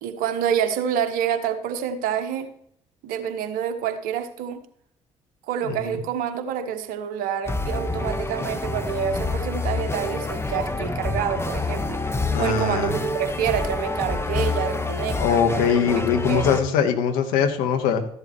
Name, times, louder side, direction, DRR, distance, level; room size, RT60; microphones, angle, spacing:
voice 1, 0.0-2.5 3.0-4.6 5.5-12.0 12.4-15.7 16.3-16.5, right 9 dB, 70° right, 9 dB, 1.2 m, -27 dB
voice 2, 5.6-5.9 12.3-12.9 15.2-18.1, left 7 dB, 75° left, 5 dB, 1.4 m, -22 dB
sound 1, 7.5-16.6, left 3 dB, 15° left, 1.4 m, -27 dB
14.0 x 11.0 x 3.2 m, 0.71 s
hypercardioid pair, 45°, 15 cm